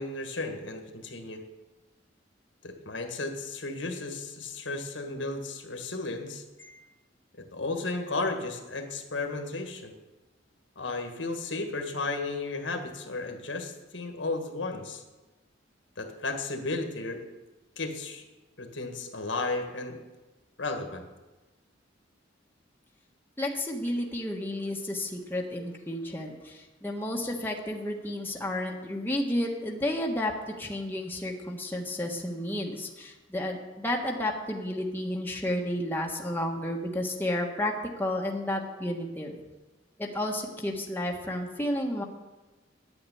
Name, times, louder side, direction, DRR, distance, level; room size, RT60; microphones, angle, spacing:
voice 1, 0.0-1.4 2.6-6.4 7.3-9.9 10.8-15.0 16.0-17.3 17.8-18.3 18.6-20.0 20.6-21.1, left 3 dB, 80° left, 5 dB, 1.7 m, -34 dB
voice 2, 23.4-37.7 38.0-39.3 40.0-42.0, left 1 dB, 10° left, 0 dB, 1.4 m, -32 dB
10.5 x 8.8 x 8.6 m, 1.1 s
head